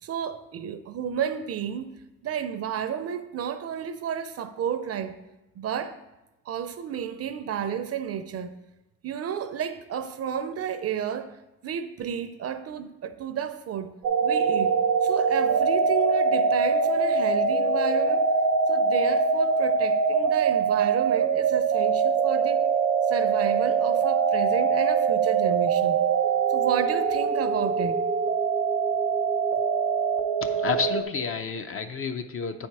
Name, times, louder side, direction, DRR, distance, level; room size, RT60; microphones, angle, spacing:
voice 1, 0.0-1.9 2.2-5.2 5.6-6.0 6.5-8.5 9.0-11.4 11.6-13.9 14.2-18.2 18.7-22.6 23.1-26.0 26.5-28.1, right 8 dB, 55° right, 0.5 m, -32 dB
sound 1, 14.0-31.0, right 5 dB, 85° right, 0.8 m, -23 dB
voice 2, 30.4-32.7, left 5 dB, 45° left, 0.6 m, -30 dB
8.6 x 4.4 x 4.7 m
cardioid pair, 90°, 30 cm